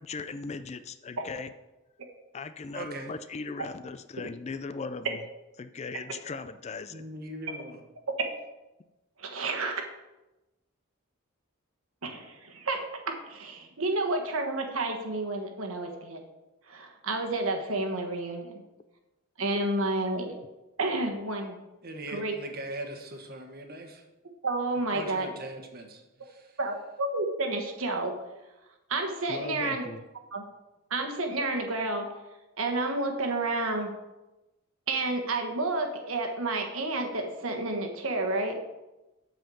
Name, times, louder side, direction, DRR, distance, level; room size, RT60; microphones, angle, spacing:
voice 1, 0.0-1.5 2.3-5.2 5.6-7.0 29.3-30.0, left 4 dB, 30° left, 12 dB, 0.3 m, -38 dB
voice 2, 2.7-3.1 6.9-7.8 21.8-24.0 24.9-26.6, right 1 dB, 45° right, 4 dB, 1.2 m, -40 dB
voice 3, 9.2-9.8 12.0-16.2 16.7-18.6 19.4-20.3 20.8-21.6 22.1-22.3 24.4-25.3 26.6-28.1 28.9-29.9 30.3-30.4 30.9-32.1 32.6-33.9 34.9-38.6, right 2 dB, 75° right, 3 dB, 1.4 m, -30 dB
7.9 x 5.6 x 6.8 m, 1.0 s
head